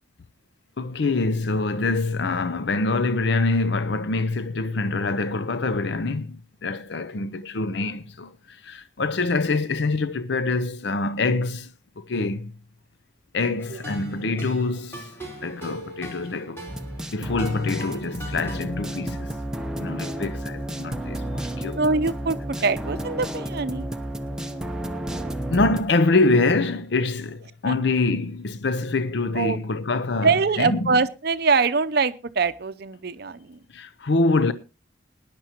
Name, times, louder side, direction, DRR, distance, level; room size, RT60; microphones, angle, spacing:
voice 1, 0.8-11.7 12.0-12.5 13.3-15.1 15.4-16.7 17.1-19.4 19.8-21.8 25.5-30.9 33.7-34.5, left 3 dB, 65° left, 0.6 m, -25 dB
sound 1, 13.6-18.6, equal, 15° left, 4.1 m, -38 dB
sound 2, 16.7-25.8, right 1 dB, 5° right, 0.8 m, -32 dB
voice 2, 21.8-23.9 27.7-27.8 29.3-29.6 30.2-33.6, right 4 dB, 55° right, 0.6 m, -23 dB
20.0 x 10.5 x 2.9 m
head